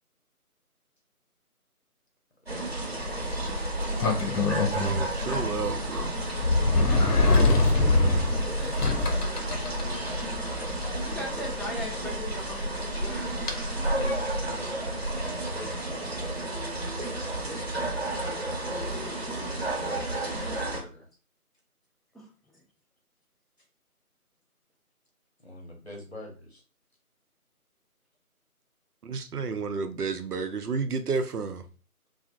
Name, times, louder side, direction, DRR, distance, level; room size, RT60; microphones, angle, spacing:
voice 1, 2.4-3.5 9.0-11.2 13.7-15.9 20.1-21.1 25.4-26.6, left 1 dB, 45° left, 0.7 m, -44 dB
sound 1, 2.5-20.8, right 2 dB, 45° right, 0.6 m, -32 dB
Sliding door, 3.0-13.6, left 2 dB, 85° left, 0.7 m, -26 dB
voice 2, 4.8-6.1 16.7-16.9 29.0-31.6, right 4 dB, 90° right, 0.5 m, -31 dB
voice 3, 8.3-9.6 11.0-13.4 22.1-22.3, left 1 dB, ahead, 0.4 m, -40 dB
2.5 x 2.0 x 2.6 m
figure-of-eight pair, 165°, 45 cm